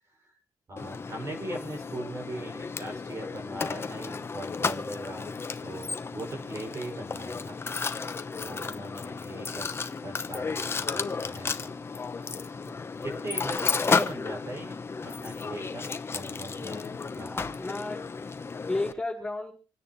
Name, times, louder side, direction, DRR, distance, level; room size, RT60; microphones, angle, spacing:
voice 1, 0.7-7.6 8.4-11.7 12.6-13.6 13.9-17.5, right 1 dB, 40° right, 0 dB, 5.8 m, -40 dB
Mechanisms, 0.8-18.9, left 4 dB, 30° left, 0.9 m, -33 dB
voice 2, 17.2-18.0 18.7-19.5, left 2 dB, 10° left, -1 dB, 5.1 m, -33 dB
27.5 x 10.0 x 3.1 m, 0.39 s
wide cardioid pair, 125°, 8 cm